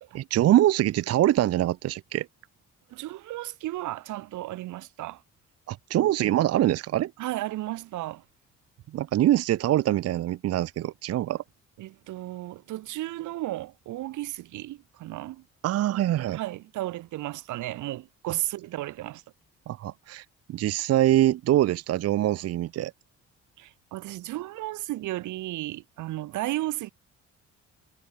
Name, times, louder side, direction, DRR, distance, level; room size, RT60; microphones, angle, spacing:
voice 1, 0.1-2.3 5.7-7.1 8.9-11.4 15.6-16.4 19.7-22.9, right 13 dB, 55° right, 0.5 m, -24 dB
voice 2, 2.9-5.2 6.0-6.2 7.2-8.2 11.8-15.4 15.9-19.2 23.6-26.9, right 16 dB, 80° right, 0.8 m, -34 dB
cardioid pair, 90°, 30 cm